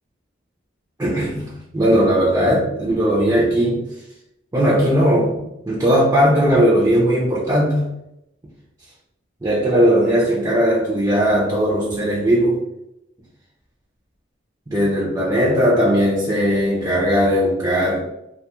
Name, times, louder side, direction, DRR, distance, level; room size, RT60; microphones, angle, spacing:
voice 1, 1.0-3.8 4.5-7.9 9.4-12.6 14.7-18.0, equal, 15° right, -5 dB, 0.4 m, -18 dB
2.6 x 2.3 x 2.9 m, 0.84 s
head